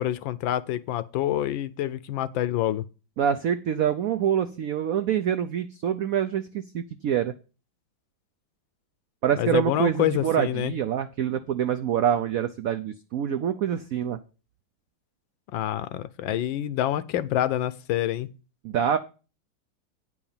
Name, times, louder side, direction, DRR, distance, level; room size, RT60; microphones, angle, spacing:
voice 1, 0.0-2.9 9.4-10.7 15.5-18.3, left 12 dB, 75° left, 1.3 m, -27 dB
voice 2, 3.2-7.3 9.2-14.2 18.6-19.0, right 9 dB, 85° right, 0.7 m, -26 dB
9.4 x 4.9 x 7.1 m
omnidirectional pair, 2.2 m